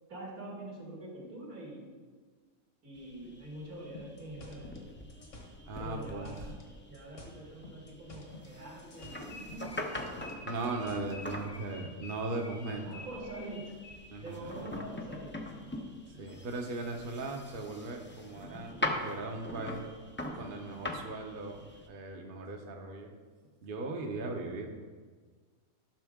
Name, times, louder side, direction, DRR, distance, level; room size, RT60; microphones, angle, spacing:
voice 1, 0.1-1.9 2.8-4.9 5.8-6.5 6.9-9.8 12.8-13.8 14.2-15.5, right 1 dB, 80° right, -4 dB, 2.7 m, -45 dB
sound 1, 2.9-21.9, left 1 dB, 15° left, 0.4 m, -43 dB
sound 2, 3.9-6.7 6.9-8.5 8.8-11.2, left 2 dB, 60° left, 1.6 m, -50 dB
voice 2, 5.7-6.3 10.5-13.0 14.1-14.5 16.2-19.9 20.3-23.1 23.6-24.7, right 2 dB, 45° right, 2 dB, 0.9 m, -38 dB
sound 3, 9.0-14.3, left 3 dB, 90° left, 1.9 m, -50 dB
12.0 x 6.2 x 3.6 m, 1.5 s
omnidirectional pair, 1.5 m